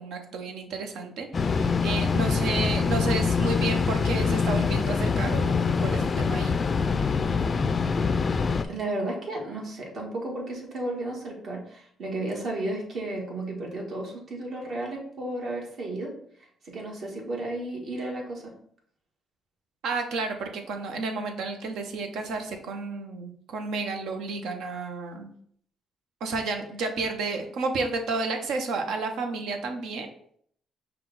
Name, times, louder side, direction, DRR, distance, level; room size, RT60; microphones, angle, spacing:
voice 1, 0.0-6.5 19.8-25.3 26.2-30.1, right 3 dB, 80° right, 5 dB, 0.7 m, -31 dB
sound 1, 1.3-8.6, left 5 dB, 35° left, 0.3 m, -24 dB
voice 2, 8.7-16.1 16.6-18.4, right 2 dB, 60° right, -1 dB, 1.4 m, -33 dB
5.6 x 2.3 x 3.9 m, 0.64 s
cardioid pair, 90°, 0 cm